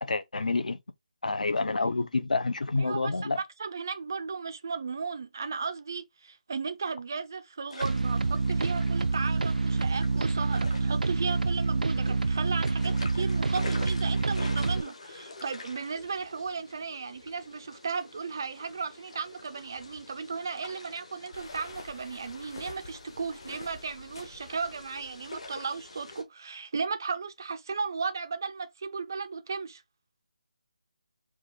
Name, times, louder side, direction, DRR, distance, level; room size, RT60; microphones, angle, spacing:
voice 1, 0.0-0.8 1.2-3.4, left 3 dB, 70° left, 0.7 m, -28 dB
voice 2, 2.8-29.8, right 5 dB, 25° right, 0.4 m, -35 dB
sound 1, 7.7-26.2, left 3 dB, 50° left, 1.1 m, -47 dB
sound 2, 7.8-14.8, right 3 dB, 85° right, 0.4 m, -27 dB
sound 3, 21.3-25.7, left 3 dB, 30° left, 0.7 m, -48 dB
4.8 x 2.4 x 4.3 m
figure-of-eight pair, 180°, 4 cm